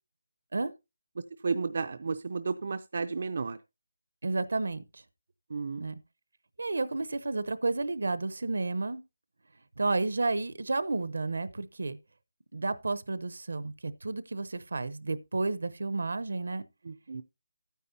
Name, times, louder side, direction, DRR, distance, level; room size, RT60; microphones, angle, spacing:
voice 1, 1.4-3.6 5.5-5.8 16.8-17.2, right 4 dB, 50° right, 0.4 m, -32 dB
voice 2, 4.2-5.0 5.8-6.0 6.6-9.0 9.8-12.0 12.5-16.6, right 3 dB, 75° right, 0.8 m, -31 dB
12.0 x 9.3 x 2.7 m
hypercardioid pair, 175°, 0 cm